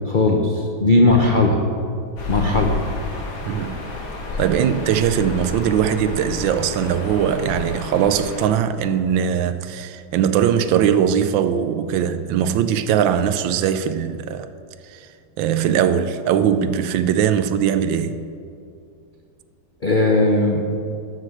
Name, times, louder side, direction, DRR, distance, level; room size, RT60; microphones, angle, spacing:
voice 1, 0.1-1.6 2.3-2.7 19.8-20.6, left 2 dB, 60° left, 0.5 m, -17 dB
sound 1, 2.2-8.5, left 3 dB, 80° left, 2.5 m, -31 dB
voice 2, 3.4-3.8 4.4-14.5 14.9-15.1 15.4-18.2, right 8 dB, 80° right, 1.3 m, -20 dB
14.0 x 6.5 x 6.3 m
omnidirectional pair, 2.2 m